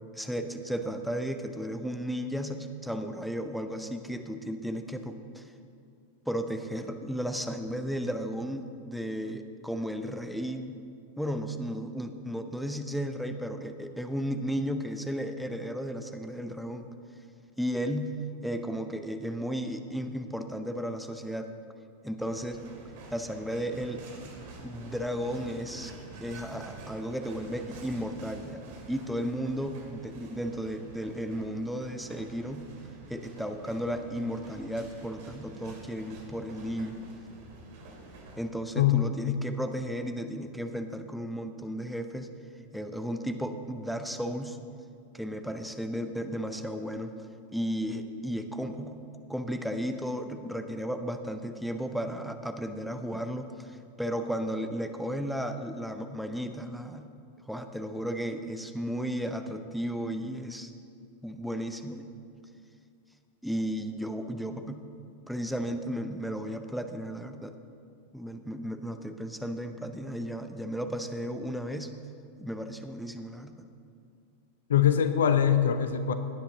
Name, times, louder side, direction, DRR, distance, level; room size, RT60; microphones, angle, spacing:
voice 1, 0.1-5.4 6.3-10.8 11.2-16.9 17.6-18.2 18.4-21.5 22.0-22.7 23.1-24.1 24.6-25.9 26.2-28.6 28.9-32.7 33.1-37.0 38.4-42.3 42.7-44.6 45.1-47.1 47.5-49.0 49.3-57.0 57.5-60.7 61.2-62.1 63.4-64.8 65.3-67.5 68.1-71.9 72.4-73.7, equal, ahead, 6 dB, 0.7 m, -34 dB
sound 1, 22.2-38.4, right 3 dB, 50° right, 2.4 m, -48 dB
voice 2, 38.8-39.4 74.7-76.1, left 9 dB, 65° left, 10 dB, 0.8 m, -23 dB
17.0 x 9.7 x 3.9 m, 2.4 s
figure-of-eight pair, 90°, 0 cm